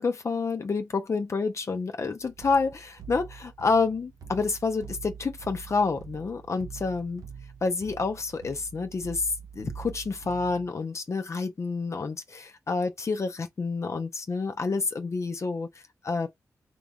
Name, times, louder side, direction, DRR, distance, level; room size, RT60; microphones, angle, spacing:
voice 1, 0.0-7.2 7.6-15.7 16.0-16.3, left 4 dB, 50° left, 0.7 m, -28 dB
sound 1, 2.2-10.7, right 7 dB, 80° right, 0.9 m, -45 dB
3.9 x 2.5 x 3.4 m
cardioid pair, 65°, 6 cm